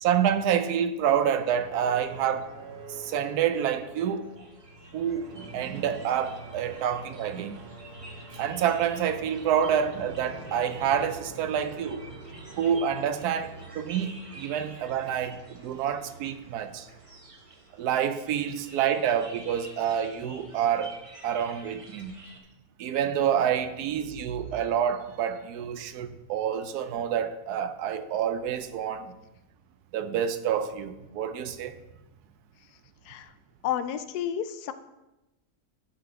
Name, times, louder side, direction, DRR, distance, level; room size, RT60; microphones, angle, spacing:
voice 1, 0.0-2.5 3.0-4.3 4.9-7.6 8.3-12.1 12.6-16.9 17.8-20.9 21.2-22.1 22.8-29.1 29.9-31.7, right 8 dB, 80° right, 1.1 m, -28 dB
sound 1, 1.0-17.8, right 2 dB, 50° right, 0.9 m, -46 dB
sound 2, 4.0-22.4, right 2 dB, 30° right, 0.7 m, -50 dB
voice 2, 33.6-34.7, left 10 dB, 85° left, 1.1 m, -31 dB
10.5 x 3.8 x 4.6 m
omnidirectional pair, 1.7 m